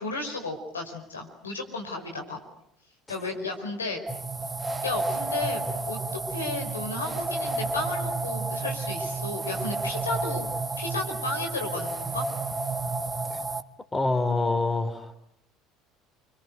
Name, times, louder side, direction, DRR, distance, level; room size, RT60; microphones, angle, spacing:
voice 1, 0.0-2.4 3.1-4.0 4.8-5.6 5.9-6.0 6.3-10.5 10.8-12.3, left 3 dB, 90° left, 2 dB, 4.9 m, -33 dB
sound 1, 4.1-13.6, right 3 dB, 20° right, 1.6 m, -31 dB
voice 2, 13.9-15.2, left 2 dB, 20° left, 9 dB, 3.6 m, -26 dB
29.0 x 25.5 x 8.1 m, 0.73 s
hypercardioid pair, 65°, 0 cm